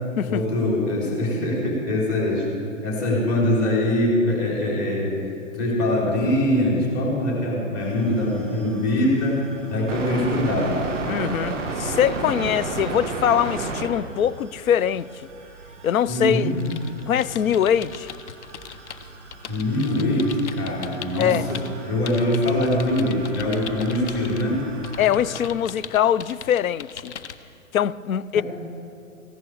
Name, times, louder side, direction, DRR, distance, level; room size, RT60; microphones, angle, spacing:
voice 1, 0.3-2.5 2.8-5.2 5.5-10.9 16.1-16.6 19.5-24.6 28.3-28.4, left 1 dB, 30° left, 3.6 m, -23 dB
sound 1, 7.8-25.5, right 3 dB, ahead, 0.3 m, -35 dB
voice 2, 11.1-15.1 15.8-16.5 17.1-18.1 21.2-21.5 25.0-27.1 27.7-28.4, left 9 dB, 85° left, 0.5 m, -22 dB
sound 2, 16.5-21.7 22.1-24.5 24.8-27.4, left 8 dB, 55° left, 0.8 m, -39 dB
15.5 x 10.5 x 4.7 m
hypercardioid pair, 140°, 41 cm